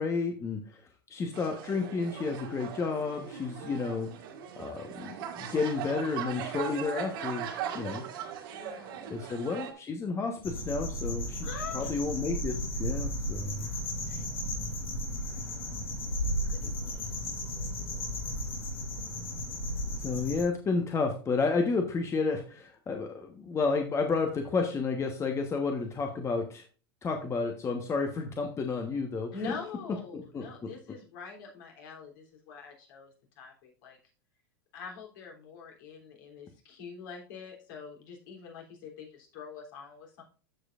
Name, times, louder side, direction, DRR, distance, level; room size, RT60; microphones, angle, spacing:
voice 1, 0.0-4.1 4.6-7.5 7.7-8.0 9.1-11.5 11.7-13.7 20.0-26.6 27.0-29.5 30.1-30.7, left 4 dB, 25° left, 4 dB, 1.2 m, -31 dB
sound 1, 1.3-9.7, right 8 dB, 65° right, 2.0 m, -39 dB
voice 2, 8.5-9.2 11.4-11.9 14.1-14.3 16.5-17.1 29.3-33.1 33.4-34.0 34.7-40.2, left 5 dB, 60° left, 0 dB, 3.2 m, -44 dB
sound 2, 10.4-20.4, equal, 80° left, 4.2 m, -34 dB
14.0 x 5.0 x 2.5 m, 0.37 s
hypercardioid pair, 105°, 12 cm